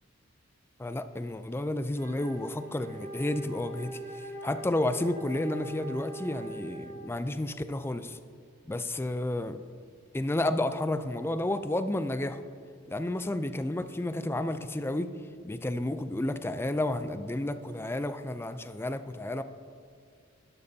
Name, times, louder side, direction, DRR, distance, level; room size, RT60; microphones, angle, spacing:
voice 1, 0.8-8.2 8.7-9.6 10.1-12.4 12.9-15.1 15.4-19.4, left 1 dB, 10° left, 10 dB, 0.4 m, -31 dB
Wind instrument woodwind instrument, 1.9-7.1, right 1 dB, 45° right, 1.5 m, -42 dB
12.5 x 11.0 x 2.7 m, 2.2 s
head